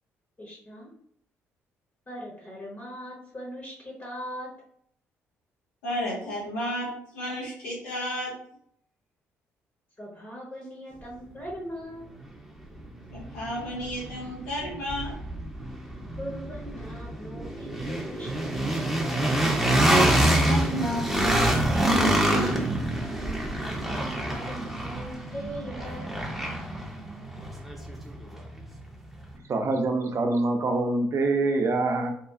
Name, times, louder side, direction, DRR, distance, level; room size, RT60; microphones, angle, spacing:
voice 1, 0.4-0.9 2.1-4.5 10.0-12.1 16.2-18.7 23.7-26.2, equal, 30° left, -2 dB, 0.9 m, -40 dB
voice 2, 5.8-8.3 13.1-15.1 20.2-22.7, equal, 80° left, -6 dB, 0.7 m, -32 dB
sound 1, 12.2-12.3 12.8-28.8, right 1 dB, 5° right, 0.7 m, -26 dB
voice 3, 29.5-32.1, right 2 dB, 45° right, 4 dB, 0.5 m, -25 dB
2.8 x 2.3 x 2.4 m, 0.67 s
hypercardioid pair, 45°, 7 cm